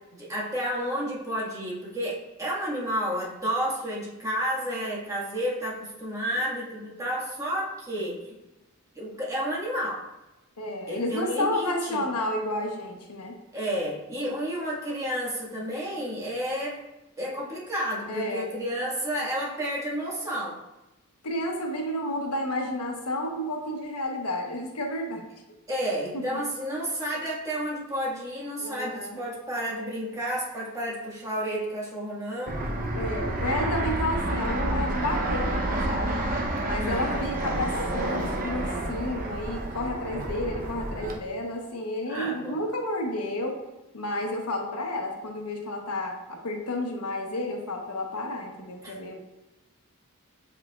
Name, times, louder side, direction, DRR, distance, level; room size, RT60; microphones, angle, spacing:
voice 1, 0.2-8.4 9.0-10.0 10.9-12.1 13.5-16.8 17.2-20.6 25.7-32.7 36.8-37.1 42.1-42.6 48.8-49.0, equal, 15° right, -6 dB, 1.7 m, -31 dB
voice 2, 10.6-13.4 18.1-18.5 21.2-25.2 25.7-25.8 26.1-26.2 28.6-29.2 32.9-36.2 36.6-43.6 43.9-49.2, left 1 dB, 90° left, 2 dB, 1.0 m, -31 dB
Fixed-wing aircraft airplane, 32.5-41.1, right 1 dB, 40° right, 0.8 m, -29 dB
8.3 x 4.9 x 2.4 m, 1.0 s
head